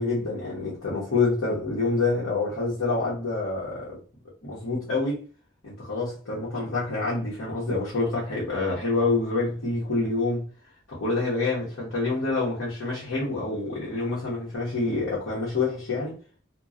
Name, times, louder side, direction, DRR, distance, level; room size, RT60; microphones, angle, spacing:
voice 1, 0.0-4.0 4.4-5.2 5.6-10.4 10.9-16.1, left 3 dB, 75° left, 1.0 m, -27 dB
2.9 x 2.2 x 2.5 m
head